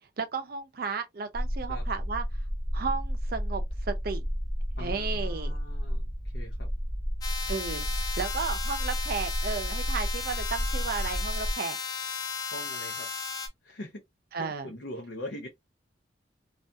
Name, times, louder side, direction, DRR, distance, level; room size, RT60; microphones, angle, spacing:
voice 1, 0.2-2.3 2.7-4.2 4.8-5.6 7.5-11.8 14.3-14.7, right 5 dB, 50° right, 0.5 m, -34 dB
sound 1, 1.3-11.5, equal, ahead, 0.9 m, -32 dB
voice 2, 4.8-6.0 6.3-6.7 12.5-13.1 13.6-13.9 14.4-15.5, left 1 dB, 70° left, 0.6 m, -41 dB
sound 2, 7.2-13.5, left 5 dB, 20° left, 0.4 m, -35 dB
2.6 x 2.4 x 2.3 m
head